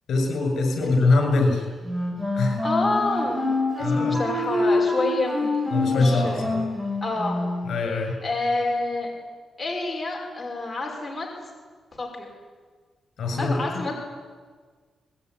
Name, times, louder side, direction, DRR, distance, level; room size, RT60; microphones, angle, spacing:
voice 1, 0.1-1.7 2.3-2.6 3.8-4.2 5.7-6.6 7.7-8.2 13.2-13.8, left 3 dB, 60° left, 4 dB, 7.3 m, -23 dB
Wind instrument woodwind instrument, 1.8-7.7, left 2 dB, 15° right, 6.3 m, -26 dB
voice 2, 2.6-6.5 7.0-7.4 8.2-9.1 9.6-11.3 11.9-12.3 13.4-14.0, left 2 dB, 10° left, -2 dB, 5.6 m, -28 dB
24.5 x 20.5 x 9.9 m, 1.5 s
wide cardioid pair, 170°, 0 cm